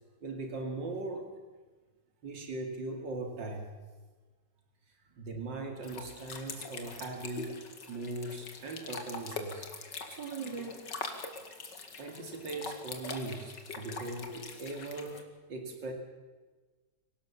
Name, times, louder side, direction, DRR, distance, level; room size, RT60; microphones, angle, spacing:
voice 1, 0.2-1.3 2.2-3.7 5.2-7.6 7.9-9.7 10.1-10.9 12.0-15.2 15.5-15.9, right 2 dB, 90° right, 4 dB, 3.0 m, -39 dB
sound 1, 5.8-15.2, left 4 dB, 75° left, 2.7 m, -43 dB
25.0 x 17.5 x 7.2 m, 1.3 s
omnidirectional pair, 1.9 m